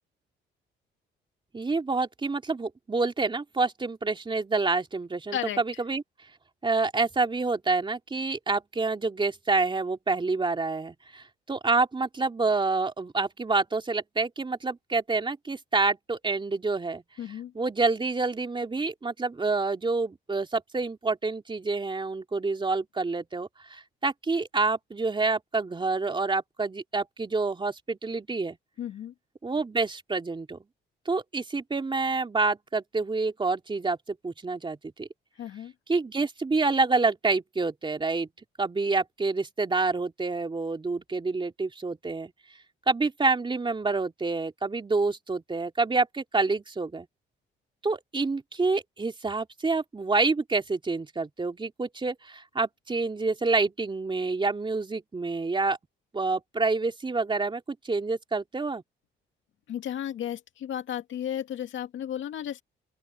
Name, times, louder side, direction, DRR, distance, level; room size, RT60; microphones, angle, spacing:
voice 1, 1.5-6.0 6.6-17.0 17.5-28.6 29.4-30.6 31.0-35.1 35.9-38.3 38.6-42.3 42.9-47.1 47.8-55.8 56.1-58.8, right 3 dB, 25° right, 3.1 m, -28 dB
voice 2, 17.2-17.5 28.8-29.1 35.4-35.7 59.7-62.6, left 10 dB, 75° left, 2.4 m, -33 dB
open air
cardioid pair, 90°, 20 cm